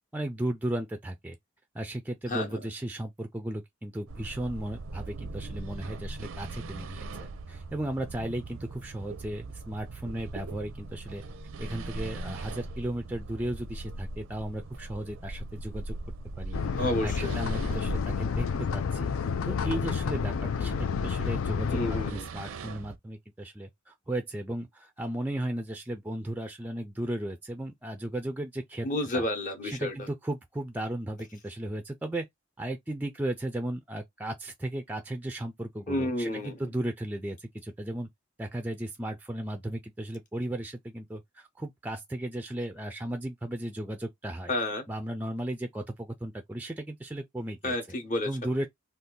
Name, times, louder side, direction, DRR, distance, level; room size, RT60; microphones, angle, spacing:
voice 1, 0.1-1.4 1.7-11.2 11.6-16.0 16.4-19.1 19.4-28.9 29.1-29.2 29.6-32.3 32.6-38.1 38.4-44.5 44.9-47.8 48.2-48.7, right 1 dB, 10° right, 0.3 m, -35 dB
sound 1, 4.1-23.0, right 2 dB, 80° right, 0.5 m, -40 dB
sound 2, 16.5-22.1, left 6 dB, 85° left, 0.4 m, -30 dB
voice 2, 16.8-17.4 21.7-22.2 28.8-30.1 35.9-36.6 44.5-44.8 47.6-48.5, left 1 dB, 40° left, 0.7 m, -30 dB
2.6 x 2.3 x 3.6 m
head